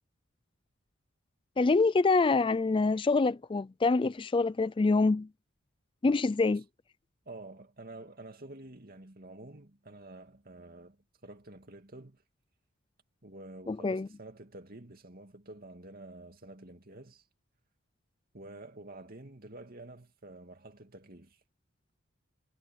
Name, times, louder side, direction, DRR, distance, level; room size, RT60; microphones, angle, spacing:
voice 1, 1.6-5.3 6.0-6.6 13.7-14.1, left 3 dB, 25° left, 0.4 m, -26 dB
voice 2, 7.3-12.2 13.2-17.2 18.3-21.4, right 2 dB, 45° right, 2.5 m, -49 dB
head